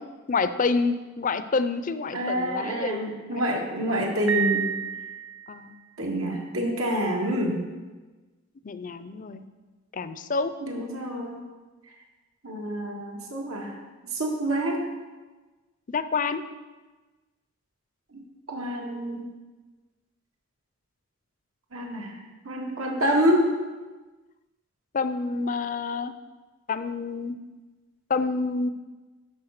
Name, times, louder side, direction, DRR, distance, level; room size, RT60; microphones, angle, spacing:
voice 1, 0.3-3.4 5.5-5.7 8.6-9.5 9.9-10.5 15.9-16.4 24.9-26.1 26.7-27.4 28.1-28.7, left 4 dB, 40° left, 12 dB, 0.5 m, -28 dB
voice 2, 2.1-4.7 6.0-7.6 10.6-11.4 12.4-13.7 14.1-14.8 18.1-18.2 18.5-19.3 21.7-22.2 22.5-23.5, equal, 90° right, 0 dB, 1.9 m, -27 dB
Piano, 4.3-5.7, right 8 dB, 60° right, 0.7 m, -29 dB
11.5 x 4.6 x 6.5 m, 1.3 s
head